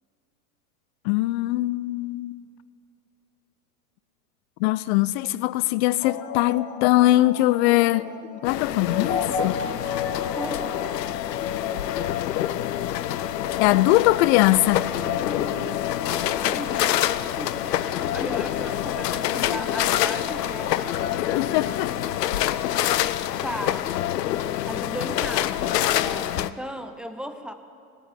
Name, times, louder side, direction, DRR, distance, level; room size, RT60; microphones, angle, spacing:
voice 1, 1.0-2.4 4.6-8.1 8.4-9.6 13.6-14.9 21.2-22.1, left 17 dB, 45° left, 0.5 m, -21 dB
sound 1, 6.0-21.8, left 6 dB, 60° left, 2.0 m, -34 dB
sound 2, 8.4-26.5, left 12 dB, 85° left, 0.6 m, -27 dB
voice 2, 10.3-11.2 16.3-17.1 17.4-20.9 23.4-23.9 24.6-27.5, equal, ahead, 0.6 m, -36 dB
16.0 x 9.1 x 9.1 m
hypercardioid pair, 110°, 47 cm